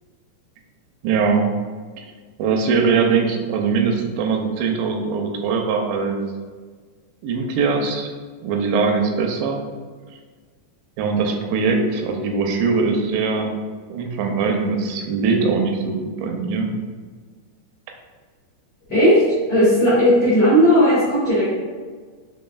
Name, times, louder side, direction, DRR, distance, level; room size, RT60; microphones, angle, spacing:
voice 1, 1.0-1.5 2.4-6.2 7.2-8.1 8.4-9.6 11.0-13.5 13.9-16.7, right 5 dB, 90° right, 3 dB, 2.8 m, -21 dB
voice 2, 18.9-19.2 19.5-21.5, equal, 65° left, -11 dB, 1.7 m, -15 dB
6.2 x 3.6 x 2.3 m, 1.5 s
omnidirectional pair, 5.0 m